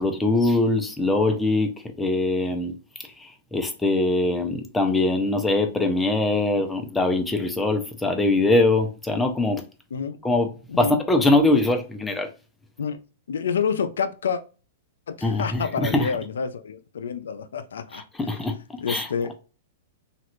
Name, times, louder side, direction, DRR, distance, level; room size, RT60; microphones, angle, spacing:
voice 1, 0.0-1.7 2.0-2.7 3.5-9.6 10.2-10.5 10.8-12.3 15.2-16.1 17.9-18.5 18.9-19.1, left 2 dB, 10° left, 0.6 m, -22 dB
voice 2, 10.7-11.0 12.8-13.0 13.3-14.4 15.1-18.0 18.8-19.4, left 6 dB, 85° left, 0.4 m, -28 dB
3.0 x 2.5 x 3.0 m
hypercardioid pair, 125°, 0 cm